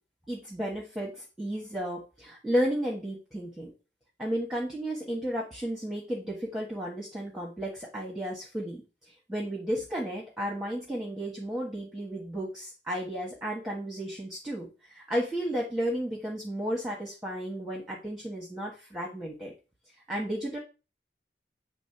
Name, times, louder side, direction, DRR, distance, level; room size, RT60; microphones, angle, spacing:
voice 1, 0.3-3.7 4.2-19.5 20.1-20.6, equal, 5° right, -3 dB, 1.3 m, -33 dB
8.4 x 3.4 x 5.8 m, 0.32 s
head